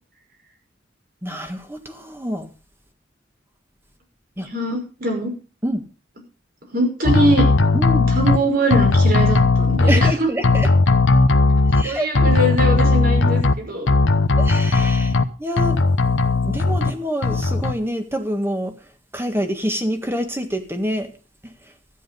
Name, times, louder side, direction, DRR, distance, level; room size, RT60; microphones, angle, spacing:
voice 1, 1.2-2.5 4.4-4.5 5.6-5.8 7.7-8.1 9.9-10.7 11.7-12.1 14.4-15.1 15.4-15.8 16.3-18.7 19.1-21.1, equal, 15° right, 6 dB, 1.7 m, -26 dB
voice 2, 4.4-5.3 6.7-7.5 8.1-10.3 11.8-13.9, right 1 dB, 55° right, 3 dB, 5.6 m, -22 dB
sound 1, 7.1-8.4 8.7-10.1 10.4-11.8 12.2-13.5 13.9-15.3 15.6-16.9 17.2-17.7, left 3 dB, 90° left, 1.0 m, -17 dB
13.0 x 9.9 x 5.4 m, 0.37 s
head